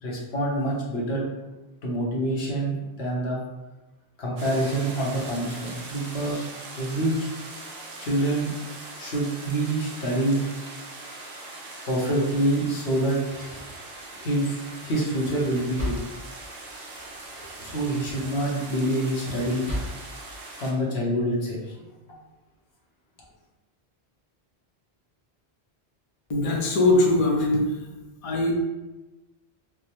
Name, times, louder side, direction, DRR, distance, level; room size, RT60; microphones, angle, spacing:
voice 1, 0.0-1.2 1.8-3.4 4.2-6.5 6.8-7.3 8.0-8.5 9.0-10.4 11.9-13.6 14.2-15.9 17.6-19.7 20.6-21.9, right 1 dB, 70° left, -4 dB, 1.1 m, -26 dB
sound 1, 4.4-20.7, right 2 dB, 75° right, 0.9 m, -41 dB
sound 2, 13.2-14.3 14.8-20.4, equal, 50° right, 1.7 m, -38 dB
voice 2, 26.3-27.8 28.2-28.5, left 2 dB, 45° left, -1 dB, 0.5 m, -21 dB
4.8 x 2.0 x 3.0 m, 1.1 s
omnidirectional pair, 1.1 m